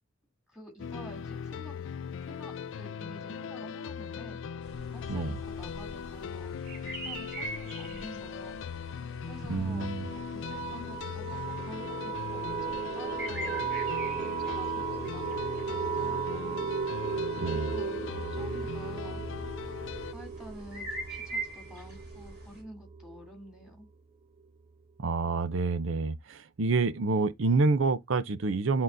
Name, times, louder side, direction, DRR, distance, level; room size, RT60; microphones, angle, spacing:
voice 1, 0.5-1.7 2.2-4.4 4.9-6.5 6.8-8.8 9.3-9.9 10.3-13.7 14.2-16.7 17.5-19.2 20.1-23.9, equal, 5° right, 2.9 m, -49 dB
sound 1, 0.8-20.1, left 7 dB, 65° left, 0.4 m, -39 dB
sound 2, 4.6-22.6, right 1 dB, 55° right, 3.9 m, -44 dB
sound 3, 9.3-23.7, right 7 dB, 25° right, 0.3 m, -36 dB
voice 2, 9.5-10.1 17.4-17.8 25.0-28.8, right 3 dB, 70° right, 0.6 m, -28 dB
11.0 x 3.9 x 2.6 m
head